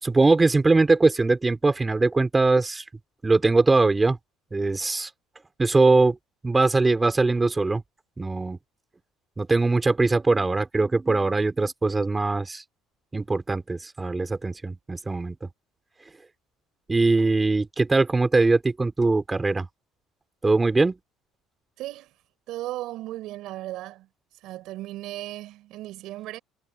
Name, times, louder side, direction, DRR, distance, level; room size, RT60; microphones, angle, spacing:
voice 1, 0.0-2.8 3.2-4.2 4.5-5.1 5.6-6.2 6.4-7.8 8.2-8.6 9.4-12.6 13.1-15.5 16.9-19.7 20.4-20.9, right 3 dB, 15° right, 3.7 m, -21 dB
voice 2, 21.8-22.1 22.5-24.1 24.4-26.4, right 16 dB, 65° right, 7.0 m, -36 dB
cardioid pair, 140°, 0 cm